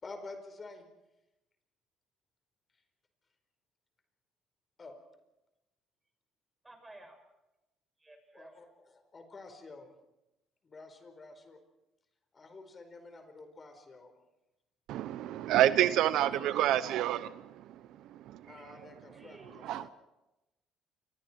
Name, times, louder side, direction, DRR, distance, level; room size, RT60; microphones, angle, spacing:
voice 1, 0.0-0.9 4.8-4.9 8.3-9.9 10.6-11.6 12.3-14.1 16.2-16.6 18.4-19.9, left 3 dB, 30° left, 7 dB, 4.7 m, -49 dB
voice 2, 6.6-7.2 8.0-8.6 19.1-19.7, right 2 dB, 15° right, 5 dB, 6.3 m, -54 dB
voice 3, 14.9-18.7 19.6-19.9, right 12 dB, 70° right, 14 dB, 0.8 m, -29 dB
29.0 x 25.0 x 4.6 m, 0.97 s
cardioid pair, 120°, 0 cm